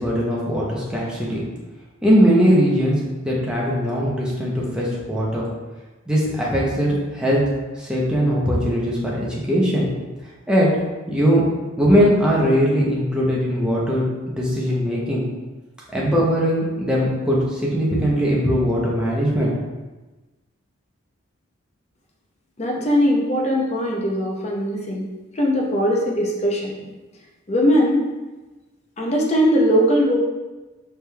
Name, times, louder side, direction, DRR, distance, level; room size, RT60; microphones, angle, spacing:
voice 1, 0.0-1.4 2.0-3.0 3.2-5.5 6.1-7.4 7.8-9.9 10.5-10.7 11.1-11.4 11.8-15.3 15.9-19.5, equal, 5° right, -5 dB, 0.7 m, -20 dB
voice 2, 22.6-25.1 25.4-26.9 27.5-28.0 29.0-30.2, equal, 30° left, -1 dB, 0.6 m, -20 dB
4.7 x 3.4 x 2.3 m, 1.2 s
head